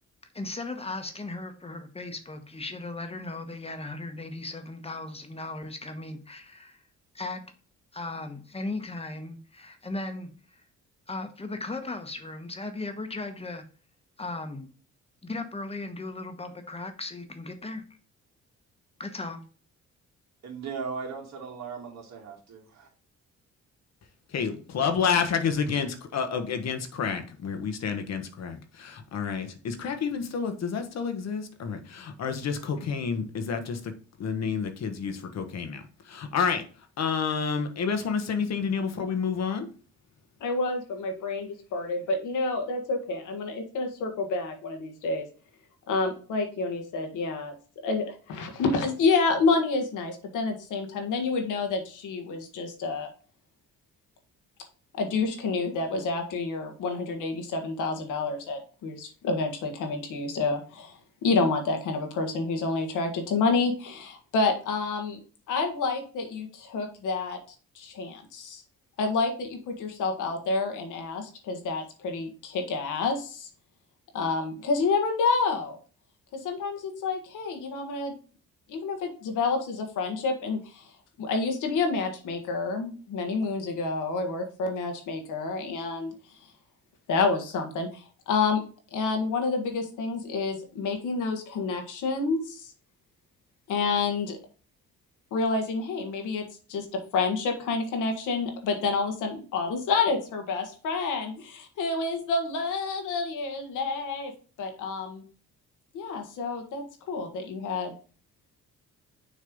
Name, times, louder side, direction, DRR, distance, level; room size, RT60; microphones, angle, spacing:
voice 1, 0.3-6.8 7.1-7.4 7.9-10.6 11.1-13.6 14.2-14.7 15.2-17.8 19.0-19.4, left 2 dB, 20° left, 7 dB, 1.3 m, -37 dB
voice 2, 20.4-22.9, right 5 dB, 60° right, -1 dB, 2.4 m, -37 dB
voice 3, 24.3-33.9 34.2-36.6 37.0-39.7, left 6 dB, 60° left, 7 dB, 1.2 m, -29 dB
voice 4, 40.4-45.3 45.9-47.6 47.8-53.1 55.0-60.9 61.2-65.2 65.5-67.4 67.8-68.6 69.0-73.5 74.1-75.8 76.4-78.1 78.7-80.8 81.2-86.1 87.1-88.6 88.9-92.7 93.7-94.4 95.3-96.4 96.7-104.3 104.6-105.2 105.9-107.9, left 4 dB, 85° left, 4 dB, 1.6 m, -28 dB
6.5 x 3.2 x 5.3 m, 0.39 s
cardioid pair, 90°, 30 cm